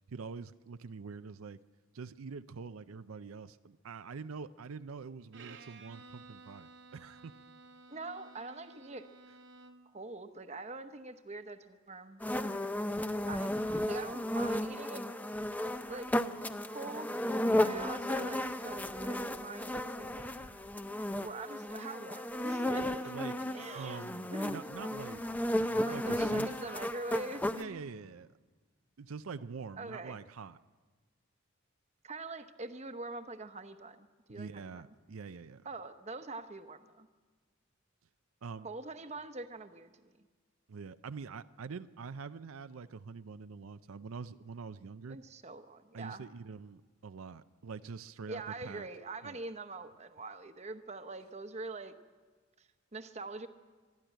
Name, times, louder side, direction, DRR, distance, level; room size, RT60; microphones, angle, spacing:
voice 1, 0.1-1.6 1.9-7.4 23.0-23.4 23.7-25.2 25.7-26.5 27.5-28.3 29.0-30.6 34.3-35.7 38.4-38.7 40.7-45.2 45.9-48.9 49.2-49.4, right 5 dB, 90° right, 12 dB, 0.5 m, -45 dB
Bowed string instrument, 5.3-10.0, right 3 dB, 60° right, 1.1 m, -54 dB
voice 2, 7.9-9.1 9.9-12.2 13.3-15.1 15.9-16.1 16.7-17.1 17.5-20.3 21.2-23.1 23.5-24.6 25.9-27.8 29.8-30.2 32.0-34.8 35.6-37.1 38.6-39.9 40.2-40.3 45.1-46.3 48.3-51.9 52.6-53.5, right 2 dB, 30° right, 9 dB, 0.9 m, -44 dB
sound 1, 12.2-27.6, left 1 dB, 10° left, 0.5 m, -34 dB
24.5 x 11.5 x 9.1 m, 1.4 s
head